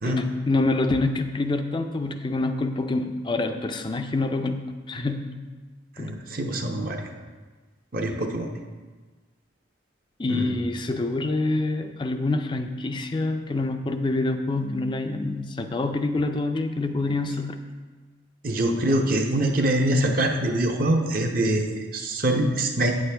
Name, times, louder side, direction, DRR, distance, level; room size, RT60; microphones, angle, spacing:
voice 1, 0.0-5.3 6.0-6.1 10.2-17.6, left 2 dB, 25° left, 7 dB, 0.4 m, -26 dB
voice 2, 6.0-7.0 7.9-8.5 10.3-10.5 18.4-22.9, right 1 dB, 45° right, 2 dB, 0.8 m, -24 dB
9.1 x 7.7 x 3.4 m, 1.4 s
head